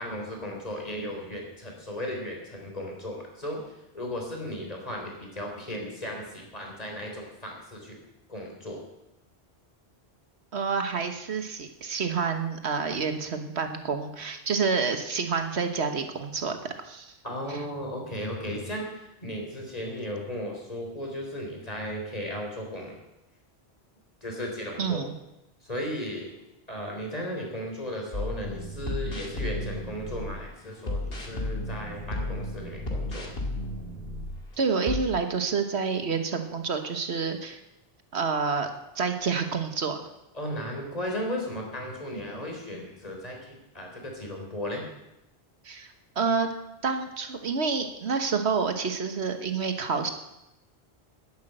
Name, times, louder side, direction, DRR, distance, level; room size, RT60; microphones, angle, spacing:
voice 1, 0.0-3.6 3.9-8.0 8.3-8.8 17.2-23.0 24.2-25.1 25.6-26.3 26.7-33.3 40.4-44.8, equal, 35° left, 0 dB, 3.9 m, -35 dB
voice 2, 10.5-17.1 17.5-17.6 24.8-25.1 34.6-37.6 38.1-38.7 38.9-40.0 45.6-46.5 46.8-50.1, right 5 dB, 80° right, 7 dB, 1.5 m, -28 dB
sound 1, 28.1-30.4 30.8-34.4 34.9-35.0, left 1 dB, 65° left, 2.5 m, -33 dB
12.0 x 10.5 x 7.8 m, 0.91 s
omnidirectional pair, 1.1 m